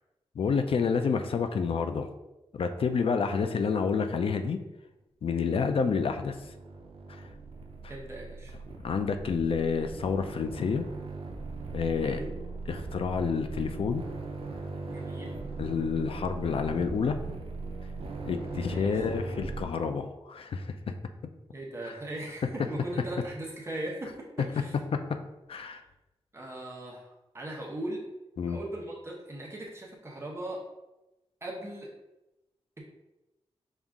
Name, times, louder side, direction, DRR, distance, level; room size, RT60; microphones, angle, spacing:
voice 1, 0.4-2.1 2.5-4.6 5.2-6.4 7.1-7.2 8.8-10.8 11.7-12.2 12.7-14.0 15.6-17.2 18.2-20.7 21.8-22.0 24.9-25.0 25.5-25.8 28.4-28.6, left 5 dB, 60° left, 7 dB, 0.4 m, -29 dB
sound 1, 5.9-19.6, right 3 dB, 65° right, 0.5 m, -40 dB
voice 2, 7.9-8.5 12.0-12.3 14.9-15.4 18.4-19.1 21.5-24.2 24.5-24.7 26.3-27.1 27.3-28.0 28.5-30.6 31.4-31.9 32.8-32.9, right 1 dB, 25° right, -3 dB, 0.8 m, -39 dB
5.4 x 2.4 x 3.5 m, 0.99 s
wide cardioid pair, 145°, 10 cm